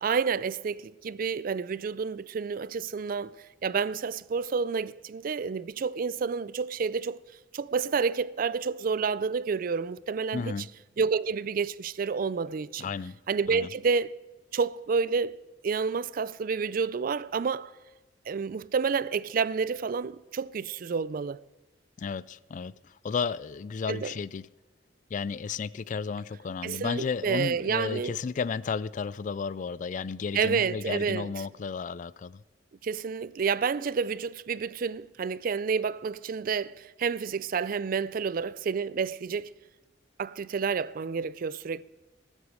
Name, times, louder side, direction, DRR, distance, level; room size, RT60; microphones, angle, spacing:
voice 1, 0.0-7.2 7.5-10.5 11.0-12.9 13.3-14.2 14.5-15.4 15.6-17.7 18.3-21.4 23.9-24.1 26.6-28.2 30.3-31.4 32.8-39.5 40.2-41.8, right 5 dB, 50° right, 0.4 m, -29 dB
voice 2, 10.3-10.7 12.8-13.2 13.5-13.7 22.0-22.8 23.0-24.5 25.1-32.4, left 5 dB, 45° left, 0.3 m, -33 dB
19.5 x 8.2 x 6.3 m
head